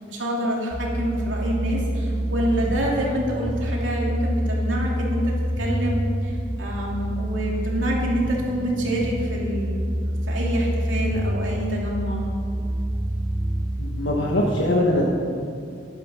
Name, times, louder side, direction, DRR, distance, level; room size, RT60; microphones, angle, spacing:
voice 1, 0.1-12.2, equal, 85° right, -3 dB, 2.9 m, -27 dB
sound 1, 0.7-14.6, equal, ahead, 1.9 m, -27 dB
voice 2, 13.8-15.1, left 1 dB, 80° left, -1 dB, 1.3 m, -22 dB
12.5 x 11.0 x 5.7 m, 2.4 s
head